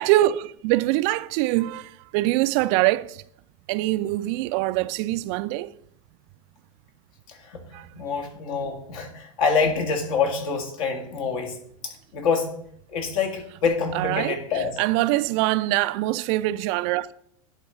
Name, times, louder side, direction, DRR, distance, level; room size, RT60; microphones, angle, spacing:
voice 1, 0.0-3.2 3.7-5.7 7.7-7.9 13.9-17.1, right 16 dB, 50° right, 0.4 m, -24 dB
voice 2, 7.3-11.6 11.8-12.5 12.9-14.8, left 5 dB, 65° left, 2.0 m, -26 dB
10.5 x 3.8 x 5.5 m
hypercardioid pair, 110°, 19 cm